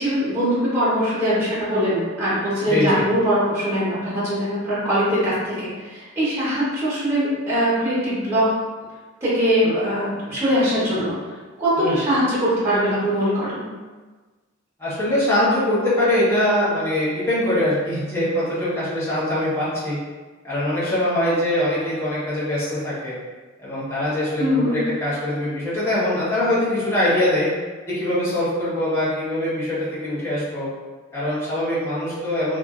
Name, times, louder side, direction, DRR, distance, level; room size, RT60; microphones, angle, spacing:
voice 1, 0.0-8.5 9.2-11.1 11.6-13.7 24.4-24.8, equal, 10° right, -11 dB, 0.9 m, -22 dB
voice 2, 2.7-3.0 11.8-12.0 14.8-20.0 20.4-23.1 23.6-27.5 27.9-30.7 31.1-32.6, left 1 dB, 10° left, -11 dB, 1.0 m, -22 dB
2.5 x 2.5 x 2.4 m, 1.3 s
head